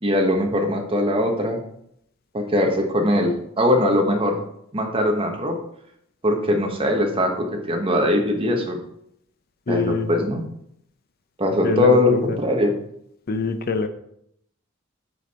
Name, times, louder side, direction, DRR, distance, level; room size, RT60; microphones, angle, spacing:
voice 1, 0.0-1.6 2.3-4.4 4.7-5.6 6.2-8.8 9.7-10.4 11.4-12.7, left 1 dB, 25° right, 3 dB, 1.2 m, -21 dB
voice 2, 9.7-10.1 11.6-12.4 13.3-13.9, left 3 dB, 50° left, 9 dB, 0.6 m, -24 dB
9.0 x 4.8 x 4.2 m, 0.73 s
head